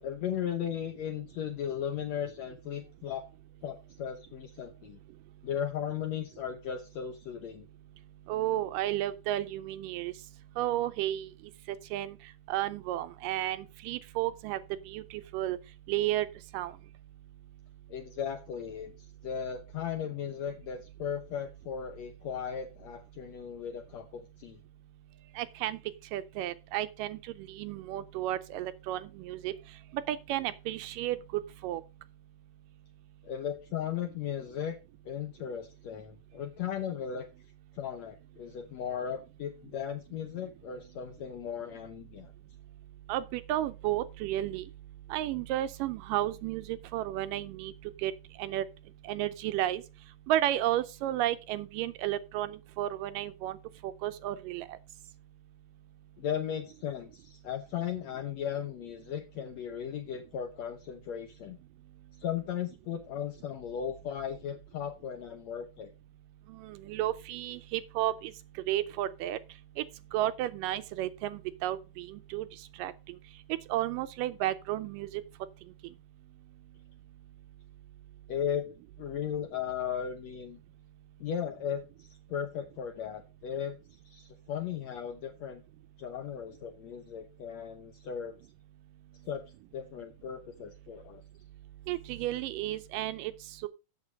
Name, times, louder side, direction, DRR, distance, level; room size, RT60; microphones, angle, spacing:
voice 1, 0.0-3.2 3.6-5.0 5.4-7.7 17.9-24.6 33.2-34.8 35.0-37.3 37.7-42.3 56.2-61.6 62.2-65.9 78.3-78.7 79.0-80.6 81.2-83.8 84.0-85.6 86.0-88.4 89.2-89.4 89.7-91.2, left 8 dB, 75° left, 1.6 m, -36 dB
voice 2, 8.3-10.1 10.6-11.3 11.7-12.2 12.5-14.6 14.9-15.6 15.9-16.3 16.5-16.7 25.4-25.8 26.1-29.5 30.1-31.8 43.1-44.6 45.1-47.7 48.0-48.1 48.4-48.7 49.0-49.8 50.3-53.6 53.8-54.8 66.5-68.3 68.7-69.4 69.8-69.9 70.1-72.5 72.8-73.2 73.7-75.2 91.9-93.3 93.6-93.7, right 13 dB, 80° right, 2.1 m, -32 dB
8.1 x 7.5 x 5.1 m
omnidirectional pair, 4.1 m